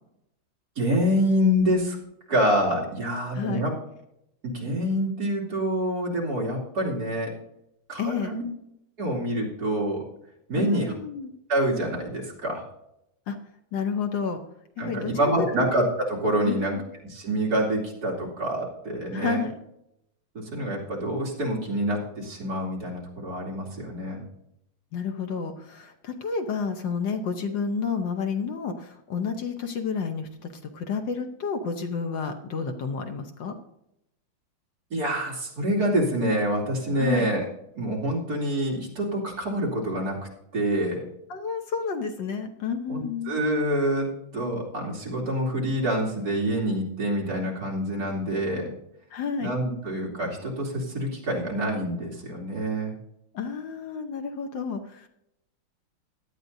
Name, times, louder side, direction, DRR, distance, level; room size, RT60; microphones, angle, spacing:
voice 1, 0.8-2.0 2.3-3.7 4.4-7.3 7.9-8.4 9.0-10.0 10.5-10.9 11.5-12.6 14.8-16.8 17.0-19.4 20.3-24.2 34.9-37.5 37.8-40.2 40.5-41.0 42.9-48.7 49.4-52.9, equal, 50° right, -3 dB, 3.3 m, -26 dB
voice 2, 8.0-8.3 10.6-11.3 13.3-13.4 13.7-14.4 14.8-15.1 15.6-15.7 16.4-16.8 19.1-19.6 24.9-33.6 36.9-37.3 41.3-43.4 49.1-49.5 53.3-55.1, left 5 dB, 65° left, 5 dB, 1.6 m, -30 dB
17.0 x 11.5 x 2.7 m, 0.82 s
omnidirectional pair, 2.2 m